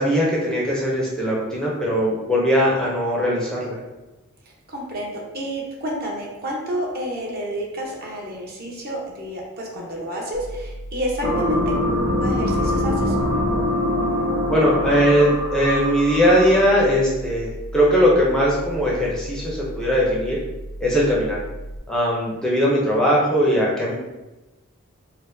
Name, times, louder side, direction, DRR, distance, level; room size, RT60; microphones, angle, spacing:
voice 1, 0.0-3.8 14.5-20.4 20.8-21.4 21.9-23.9, equal, 5° left, -5 dB, 0.5 m, -20 dB
voice 2, 4.7-11.7 12.2-13.2, equal, 50° right, -2 dB, 0.8 m, -29 dB
sound 1, 10.3-21.8, right 1 dB, 80° left, 0.4 m, -36 dB
sound 2, 11.2-16.8, left 1 dB, 80° right, 1.0 m, -23 dB
4.2 x 2.1 x 2.5 m, 1.1 s
head